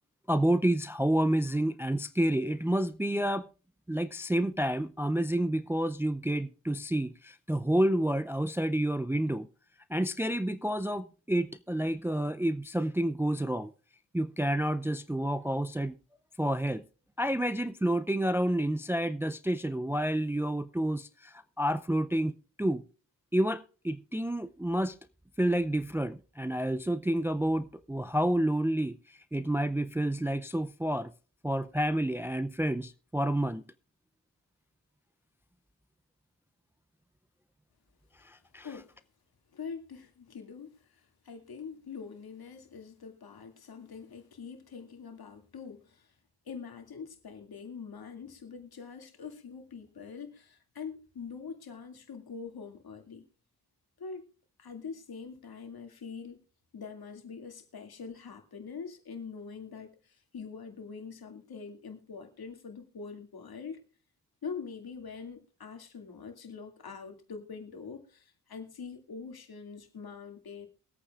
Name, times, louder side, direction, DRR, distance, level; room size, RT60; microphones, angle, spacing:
voice 1, 0.3-3.5 3.9-9.5 9.9-13.7 14.1-15.9 16.4-16.8 17.2-22.3 22.6-22.8 23.3-25.0 25.4-29.0 29.3-31.1 31.4-33.6 38.5-38.7, right 1 dB, 5° right, 0.5 m, -29 dB
voice 2, 39.5-46.1 46.5-53.2 54.0-54.2 54.6-56.4 56.7-63.8 64.4-70.7, left 5 dB, 60° left, 2.4 m, -44 dB
23.0 x 8.5 x 2.4 m
cardioid pair, 65°, 40 cm